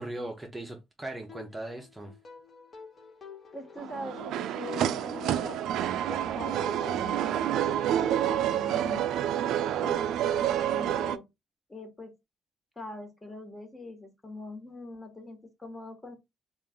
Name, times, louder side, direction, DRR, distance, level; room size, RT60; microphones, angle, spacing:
voice 1, 0.0-2.2, right 1 dB, 15° right, 0.8 m, -39 dB
sound 1, 1.3-9.0, left 5 dB, 40° left, 1.5 m, -49 dB
voice 2, 3.5-5.7 6.1-7.5 8.0-9.0 9.8-11.3 11.7-12.2 12.7-16.2, left 2 dB, 20° left, 1.4 m, -43 dB
sound 2, 3.8-11.2, right 11 dB, 80° right, 0.3 m, -28 dB
3.7 x 2.5 x 3.5 m
cardioid pair, 90°, 0 cm